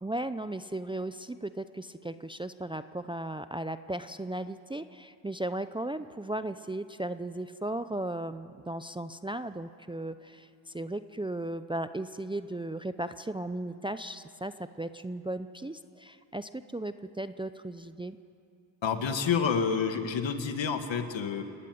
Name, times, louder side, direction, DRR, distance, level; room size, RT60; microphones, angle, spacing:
voice 1, 0.0-18.2, right 1 dB, 10° right, 11 dB, 0.6 m, -36 dB
voice 2, 18.8-21.4, left 6 dB, 65° left, 7 dB, 2.1 m, -28 dB
28.5 x 13.0 x 9.4 m, 2.5 s
cardioid pair, 80°, 49 cm